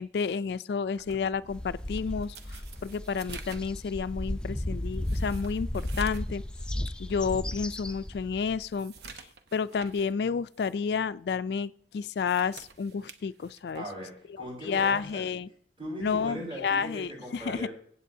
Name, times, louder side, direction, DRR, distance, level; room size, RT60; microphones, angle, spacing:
voice 1, 0.0-6.4 7.0-8.9 9.5-13.8 14.6-15.5 16.0-17.7, left 6 dB, 65° left, 0.3 m, -30 dB
sound 1, 1.0-6.4 6.7-6.8 7.4-7.5 7.9-10.2 10.5-10.7 12.0-13.9 15.0-15.3, right 5 dB, 65° right, 0.9 m, -49 dB
sound 2, 1.5-8.6, left 1 dB, 5° left, 0.5 m, -35 dB
voice 2, 13.7-15.3 15.8-17.7, right 1 dB, 30° right, 5.5 m, -39 dB
23.5 x 8.3 x 2.7 m
head